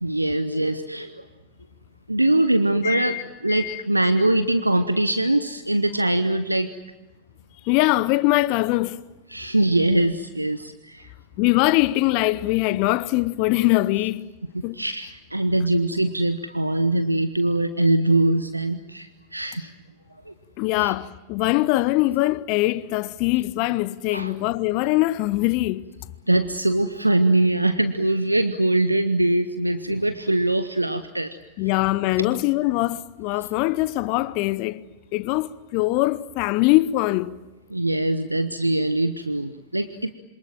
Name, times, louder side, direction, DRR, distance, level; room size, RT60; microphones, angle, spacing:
voice 1, 0.0-1.2 2.1-6.7 9.3-11.1 14.7-19.7 20.3-20.4 20.8-20.9 24.1-24.3 26.3-31.4 37.7-40.1, right 1 dB, 85° right, 1.1 m, -22 dB
voice 2, 2.8-3.2 3.5-3.8 7.6-9.0 11.4-14.3 14.6-14.8 20.6-25.9 31.6-34.8 35.1-37.3, left 18 dB, 45° left, 0.8 m, -22 dB
27.0 x 26.5 x 7.6 m
figure-of-eight pair, 90°, 0 cm